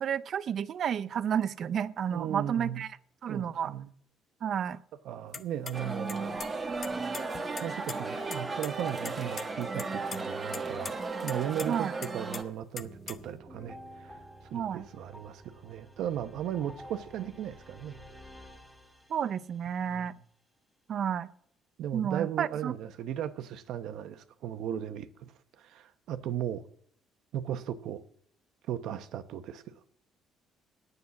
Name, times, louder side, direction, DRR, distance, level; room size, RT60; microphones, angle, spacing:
voice 1, 0.0-2.9 3.2-3.7 4.4-4.8 11.7-11.9 14.5-14.9 19.1-20.1 20.9-21.3 21.9-22.7, right 8 dB, 50° right, 0.5 m, -31 dB
voice 2, 2.1-2.8 3.3-3.9 5.0-6.4 7.6-10.9 11.2-11.9 12.1-14.2 14.5-18.0 19.9-20.2 21.8-25.1 25.6-26.6 27.3-28.0 28.7-29.7, right 10 dB, 70° right, 0.9 m, -36 dB
sound 1, 5.3-5.7 6.1-6.5 6.8-8.0 8.3-8.4 8.6-8.7 9.0-9.5 9.8-10.2 10.5-10.9 11.3-11.7 12.0-13.4, left 5 dB, 30° left, 0.7 m, -40 dB
sound 2, 5.7-12.4, right 3 dB, 25° right, 1.4 m, -35 dB
sound 3, 12.8-19.6, equal, 5° left, 2.1 m, -51 dB
9.6 x 8.0 x 7.0 m
cardioid pair, 135°, 0 cm